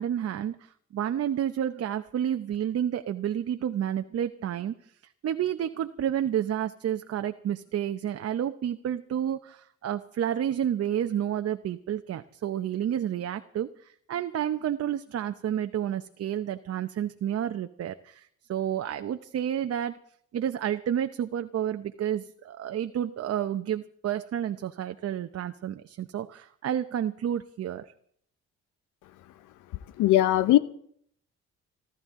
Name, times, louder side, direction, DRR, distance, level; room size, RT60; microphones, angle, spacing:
voice 1, 0.0-4.7 5.2-20.0 20.3-27.9, right 10 dB, 55° right, 8 dB, 0.8 m, -30 dB
voice 2, 30.0-30.6, left 14 dB, 90° left, 14 dB, 0.7 m, -19 dB
27.5 x 12.5 x 3.7 m, 0.65 s
cardioid pair, 90°, 30 cm